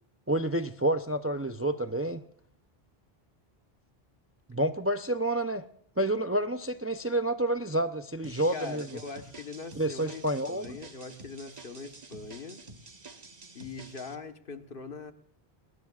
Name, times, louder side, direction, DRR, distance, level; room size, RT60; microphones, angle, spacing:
voice 1, 0.3-2.2 4.5-5.6 6.0-9.0 9.8-10.8, right 1 dB, 20° right, 0.5 m, -29 dB
sound 1, 8.2-14.2, right 3 dB, 40° right, 1.4 m, -49 dB
voice 2, 8.5-12.6 13.5-15.1, left 4 dB, 60° left, 1.5 m, -42 dB
28.0 x 20.0 x 2.4 m
omnidirectional pair, 1.0 m